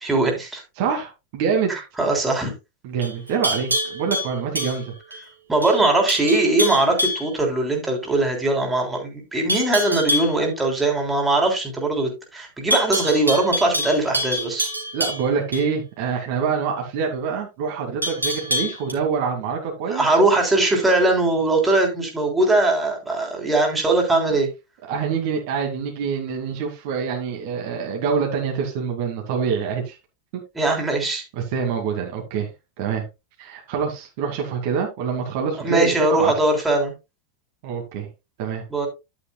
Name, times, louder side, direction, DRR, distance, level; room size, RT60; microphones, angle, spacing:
voice 1, 0.0-0.6 2.0-2.5 5.5-14.7 19.9-24.5 30.6-31.2 35.6-36.9 38.7-38.9, right 2 dB, 10° right, 3.4 m, -20 dB
voice 2, 0.8-1.8 2.8-4.9 14.9-20.0 24.9-30.0 31.3-32.5 32.8-33.0 33.4-36.3 37.6-38.1 38.4-38.6, right 6 dB, 45° right, 2.3 m, -25 dB
Livestock farm animals working animals, 3.0-5.2 5.6-5.8 6.1-7.3 9.5-10.4 12.7-15.7 18.0-18.9, equal, 80° right, 2.8 m, -26 dB
11.0 x 9.2 x 2.3 m
figure-of-eight pair, 90°, 0 cm